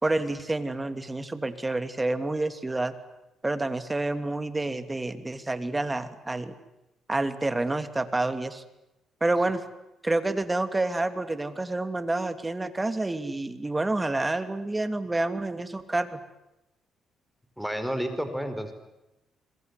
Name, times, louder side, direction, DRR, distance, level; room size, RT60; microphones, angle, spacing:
voice 1, 0.0-2.9 3.4-6.5 7.1-8.6 9.2-9.6 10.0-16.2, right 2 dB, 15° right, 10 dB, 2.8 m, -28 dB
voice 2, 17.6-18.7, equal, ahead, 8 dB, 4.9 m, -30 dB
26.0 x 23.0 x 9.7 m, 0.94 s
cardioid pair, 90°, 0 cm